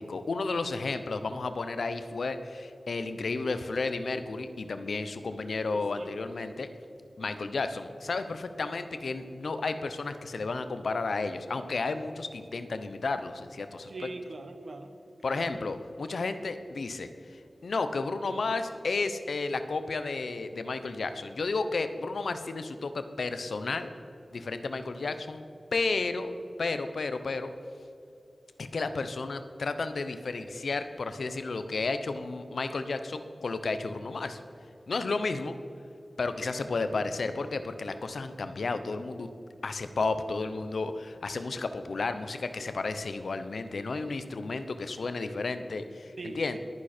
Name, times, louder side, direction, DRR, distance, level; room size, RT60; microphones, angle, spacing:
voice 1, 0.0-6.7 7.2-13.9 15.2-17.1 17.6-23.9 24.3-25.4 25.7-26.3 26.6-27.5 28.6-34.4 34.9-35.6 36.2-39.3 39.6-46.6, left 3 dB, 85° left, 10 dB, 0.9 m, -32 dB
voice 2, 5.7-6.1 13.9-14.9 15.2-15.5 46.2-46.6, right 2 dB, 75° right, 7 dB, 1.4 m, -41 dB
21.0 x 9.9 x 4.4 m, 2.7 s
wide cardioid pair, 55°, 0 cm